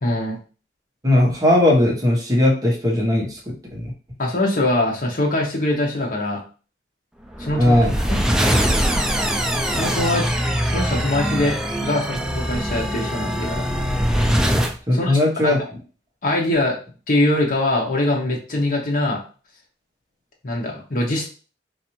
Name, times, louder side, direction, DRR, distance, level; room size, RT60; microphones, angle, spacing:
voice 1, 0.0-0.4 4.2-6.4 7.4-7.8 8.1-8.2 9.7-10.3 10.7-13.6 14.9-15.5 16.2-16.8 17.1-19.2 20.4-21.3, left 1 dB, 45° left, -1 dB, 0.9 m, -22 dB
voice 2, 1.0-3.9 7.5-7.9 14.9-15.6, left 1 dB, 20° right, -2 dB, 1.0 m, -18 dB
sound 1, 7.3-14.8, equal, 5° right, 0.3 m, -22 dB
4.1 x 2.5 x 3.0 m, 0.37 s
head